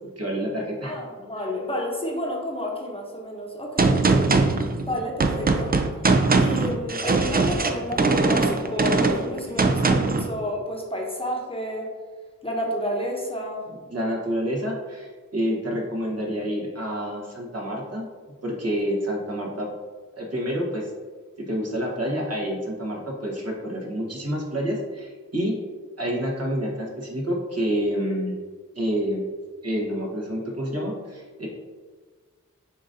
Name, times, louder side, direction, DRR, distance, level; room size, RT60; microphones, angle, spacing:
voice 1, 0.2-1.0 13.9-18.1 18.4-19.7 20.2-20.9 21.5-25.5 26.0-28.4 28.7-29.3 29.6-31.5, equal, 50° right, -2 dB, 1.2 m, -28 dB
voice 2, 0.8-4.3 4.9-5.7 6.4-11.9 12.4-13.6, equal, 15° left, -1 dB, 0.9 m, -30 dB
Gunshot gunfire, 3.8-10.3, right 3 dB, 30° right, 0.4 m, -21 dB
6.9 x 2.6 x 2.7 m, 1.5 s
cardioid pair, 45°, 32 cm